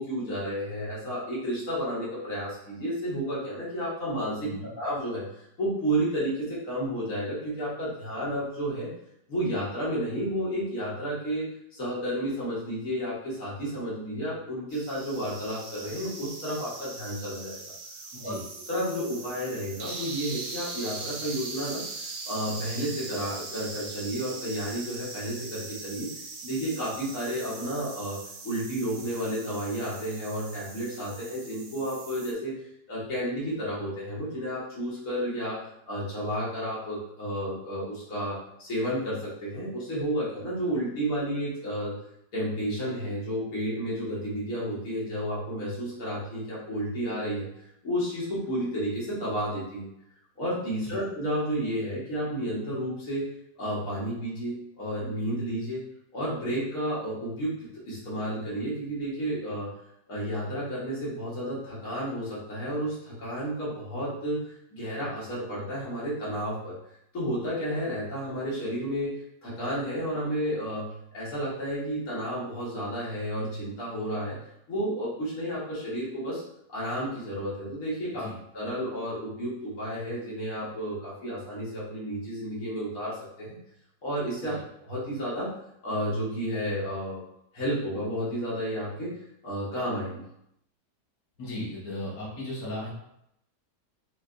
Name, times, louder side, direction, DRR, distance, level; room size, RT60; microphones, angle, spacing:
voice 1, 0.0-4.5 4.8-8.9 9.3-17.6 18.2-18.4 18.7-21.8 22.3-26.1 26.4-28.2 28.4-32.5 32.9-35.6 35.9-41.9 42.3-47.5 47.8-49.9 50.4-53.2 53.6-55.8 56.1-59.7 60.1-66.8 67.1-69.1 69.4-74.4 74.7-76.4 76.7-78.3 78.5-83.6 84.0-85.5 85.8-87.2 87.5-89.1 89.4-90.2, equal, 60° left, -8 dB, 1.6 m, -31 dB
sound 1, 14.7-32.3, right 3 dB, 65° right, 0.6 m, -41 dB
voice 2, 18.1-18.4 50.8-51.0 78.1-78.3 84.4-84.6 91.4-92.9, left 1 dB, 85° left, -6 dB, 1.7 m, -36 dB
4.8 x 2.2 x 2.5 m, 0.78 s
omnidirectional pair, 1.7 m